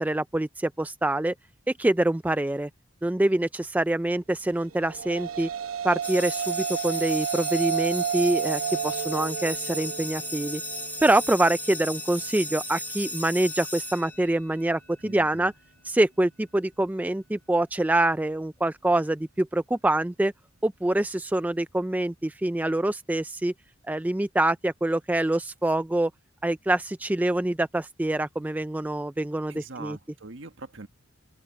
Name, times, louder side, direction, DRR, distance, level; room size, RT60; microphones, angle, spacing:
voice 1, 0.0-1.3 1.8-2.7 3.0-5.5 5.8-10.6 11.0-15.5 15.8-20.3 20.6-23.5 23.9-26.1 26.4-30.0, right 1 dB, 10° right, 0.3 m, -25 dB
sound 1, 4.7-13.2, right 8 dB, 85° right, 1.0 m, -32 dB
sound 2, 6.0-14.7, equal, 10° left, 2.1 m, -36 dB
voice 2, 15.0-15.5 29.5-30.9, right 3 dB, 60° right, 1.5 m, -42 dB
open air
head